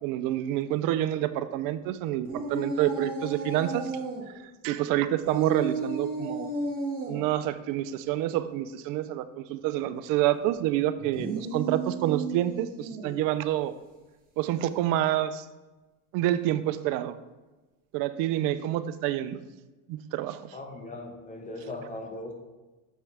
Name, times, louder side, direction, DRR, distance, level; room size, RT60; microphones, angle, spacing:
voice 1, 0.0-3.9 4.6-6.5 7.1-13.7 14.4-15.4 16.1-17.2 17.9-19.4 19.9-20.4, right 13 dB, 60° right, 13 dB, 0.5 m, -28 dB
sound 1, 2.2-4.2 5.2-7.2 11.0-13.2, right 3 dB, 25° right, 2.0 m, -33 dB
voice 2, 20.5-22.3, left 2 dB, 20° left, 3 dB, 1.1 m, -39 dB
7.3 x 4.5 x 3.3 m, 1.2 s
supercardioid pair, 105°, 37 cm